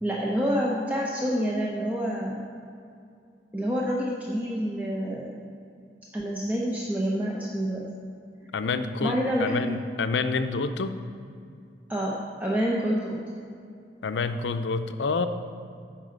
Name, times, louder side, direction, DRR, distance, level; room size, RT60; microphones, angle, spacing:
voice 1, 0.0-2.4 3.5-5.3 6.1-7.8 9.0-9.7 11.9-12.1 12.4-13.2, equal, 10° right, -4 dB, 0.7 m, -27 dB
voice 2, 8.5-11.0 14.0-15.3, left 4 dB, 85° left, 9 dB, 0.5 m, -28 dB
9.0 x 5.5 x 6.5 m, 2.4 s
head